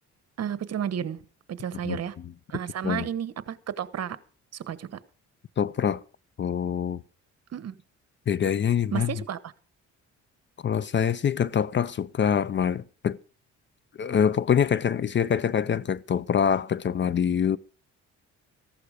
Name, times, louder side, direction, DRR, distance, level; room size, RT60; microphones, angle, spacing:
voice 1, 0.4-1.2 1.5-2.2 2.5-4.2 4.5-5.0 7.5-7.7 8.9-9.4, right 9 dB, 55° right, 1.1 m, -32 dB
voice 2, 5.6-6.0 6.4-7.0 8.3-9.1 10.6-13.2 14.0-17.6, left 8 dB, 40° left, 0.6 m, -25 dB
14.5 x 11.5 x 5.0 m
cardioid pair, 90°, 30 cm